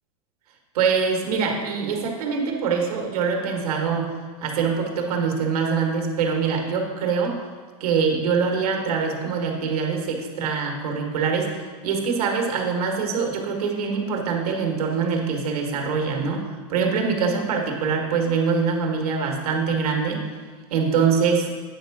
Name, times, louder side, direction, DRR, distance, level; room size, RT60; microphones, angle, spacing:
voice 1, 0.7-4.1 4.4-7.4 7.8-20.2 20.7-21.5, right 5 dB, 85° right, 2 dB, 1.6 m, -24 dB
8.9 x 3.7 x 6.0 m, 1.5 s
supercardioid pair, 160°, 19 cm